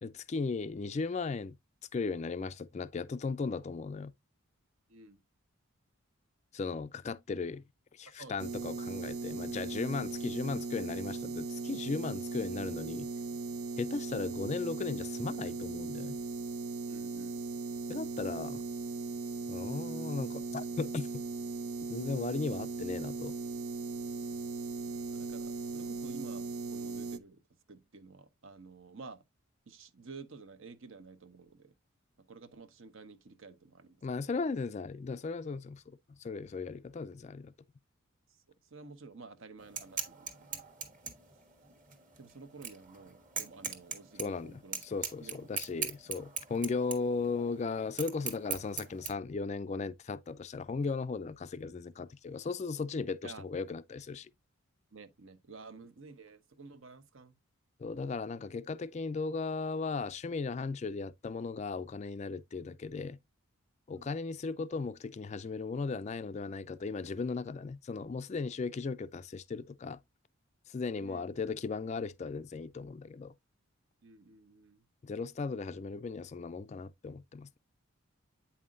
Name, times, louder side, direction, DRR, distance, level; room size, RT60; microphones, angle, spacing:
voice 1, 0.0-1.6 1.9-4.1 6.5-7.6 7.9-13.1 13.8-16.2 17.9-18.6 19.5-21.2 21.9-23.3 34.0-37.5 44.2-54.3 57.8-63.2 63.9-70.0 70.7-73.3 75.0-77.6, left 4 dB, 30° left, 0.3 m, -36 dB
voice 2, 4.9-5.2 8.1-8.8 16.9-17.4 25.1-27.4 27.7-29.2 29.7-31.7 32.3-34.0 38.6-40.6 42.2-44.8 45.2-45.4 53.2-53.5 54.9-57.3 63.9-64.1 71.0-71.3 74.0-74.8, right 4 dB, 65° right, 0.9 m, -51 dB
sound 1, 8.4-27.2, right 3 dB, 85° right, 0.6 m, -38 dB
sound 2, 39.6-49.1, right 6 dB, 40° right, 1.3 m, -40 dB
8.5 x 5.6 x 2.5 m
head